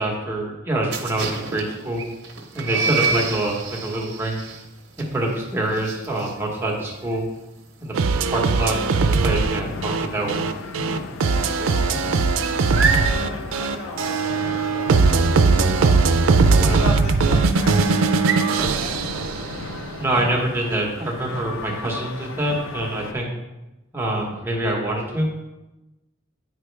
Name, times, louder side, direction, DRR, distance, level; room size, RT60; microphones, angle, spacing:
voice 1, 0.0-2.0 2.5-4.4 5.0-7.2 7.8-7.9 8.3-10.4 20.0-23.3 23.9-25.3, right 1 dB, 10° right, -2 dB, 1.1 m, -25 dB
sound 1, 0.9-10.4 10.7-11.0 11.3-18.7, right 5 dB, 60° right, 0.9 m, -29 dB
voice 2, 2.7-3.2 11.2-11.9 12.9-19.0, left 1 dB, 90° left, -3 dB, 1.9 m, -36 dB
sound 2, 7.9-19.9, right 4 dB, 85° right, 0.5 m, -20 dB
sound 3, 8.7-23.1, left 4 dB, 70° left, 0.5 m, -36 dB
8.8 x 5.0 x 3.3 m, 1.0 s
head